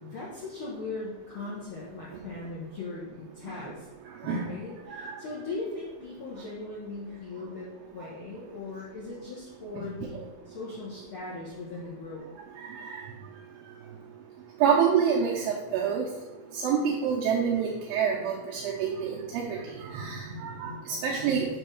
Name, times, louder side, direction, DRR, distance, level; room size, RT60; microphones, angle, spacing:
voice 1, 0.0-3.9 4.2-12.2, left 3 dB, 70° left, -7 dB, 1.2 m, -39 dB
voice 2, 12.7-13.0 14.6-16.1 16.5-21.5, right 7 dB, 80° right, -3 dB, 2.5 m, -27 dB
7.1 x 3.3 x 6.3 m, 1.2 s
omnidirectional pair, 4.2 m